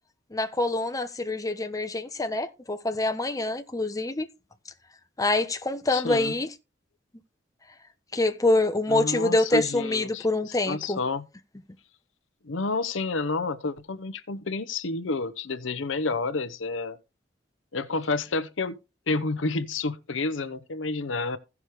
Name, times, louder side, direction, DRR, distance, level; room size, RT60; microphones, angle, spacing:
voice 1, 0.3-4.3 5.2-6.5 8.1-11.0, left 2 dB, 20° left, 1.0 m, -25 dB
voice 2, 5.9-6.3 8.9-11.2 12.4-17.0 17.7-18.8 19.1-21.4, left 3 dB, 90° left, 0.8 m, -30 dB
16.0 x 6.0 x 3.2 m
head